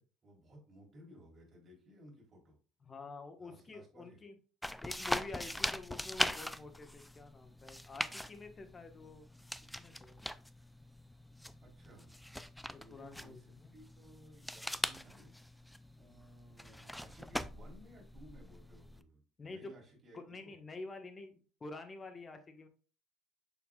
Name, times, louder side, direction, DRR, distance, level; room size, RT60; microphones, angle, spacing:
voice 1, 0.0-2.6 3.4-4.2 11.6-12.1 12.7-15.3 15.6-20.5, equal, 35° right, -1 dB, 3.6 m, -59 dB
voice 2, 2.8-4.4 4.8-9.3 9.8-10.2 12.7-13.7 19.4-19.7 20.1-22.7, left 3 dB, 25° left, 7 dB, 1.3 m, -48 dB
sound 1, 4.6-19.0, equal, 5° left, 0.4 m, -41 dB
7.0 x 6.8 x 2.4 m, 0.36 s
cardioid pair, 110°, 0 cm